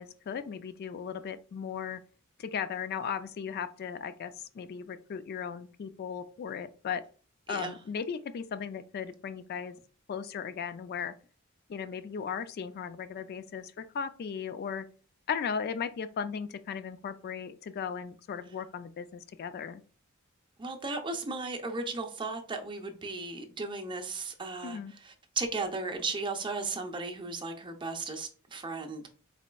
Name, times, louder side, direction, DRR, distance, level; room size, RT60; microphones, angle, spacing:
voice 1, 0.0-2.0 2.5-4.3 4.6-7.0 7.5-9.7 10.1-11.1 11.7-13.6 14.0-14.8 15.3-19.0 19.4-19.8 24.6-24.9, left 7 dB, 50° left, 0.3 m, -36 dB
voice 2, 7.5-7.8 20.6-29.1, right 3 dB, 25° right, 0.6 m, -36 dB
4.2 x 4.0 x 2.2 m
head